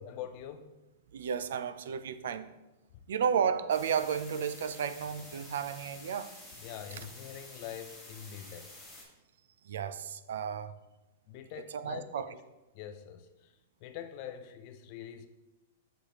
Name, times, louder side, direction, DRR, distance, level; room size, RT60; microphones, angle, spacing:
voice 1, 0.1-0.7 6.6-8.7 11.3-12.4 12.7-13.5 13.8-15.3, left 10 dB, 35° left, 0.5 m, -44 dB
voice 2, 1.1-2.5 3.1-6.3 9.6-10.8 11.6-12.3, right 7 dB, 75° right, 0.4 m, -33 dB
sound 1, 3.7-9.0, left 2 dB, ahead, 1.1 m, -50 dB
6.6 x 4.9 x 2.9 m
supercardioid pair, 165°, 0 cm